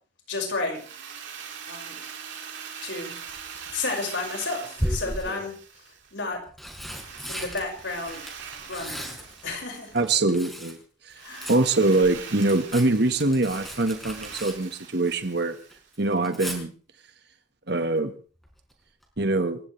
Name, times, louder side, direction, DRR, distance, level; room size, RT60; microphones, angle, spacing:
voice 1, 0.3-0.8 1.7-2.0 2.8-3.1 3.7-5.5 6.1-6.4 7.3-8.2 8.7-9.2 9.4-9.9 11.2-11.5, left 3 dB, 75° left, 2 dB, 5.9 m, -31 dB
Drill, 0.7-6.2 6.9-10.2 11.2-16.0, right 7 dB, 75° right, 4.0 m, -42 dB
Tearing, 3.3-3.7 4.8-5.5 6.3-10.8 11.1-15.4 15.7-16.6 18.4-18.7 19.0-19.1, equal, ahead, 5.2 m, -36 dB
voice 2, 9.9-10.8 11.0-11.2 11.5-15.6 16.0-16.7 17.7-18.1 19.2-19.6, right 2 dB, 60° right, 8 dB, 1.6 m, -23 dB
28.0 x 15.0 x 3.4 m, 0.40 s
head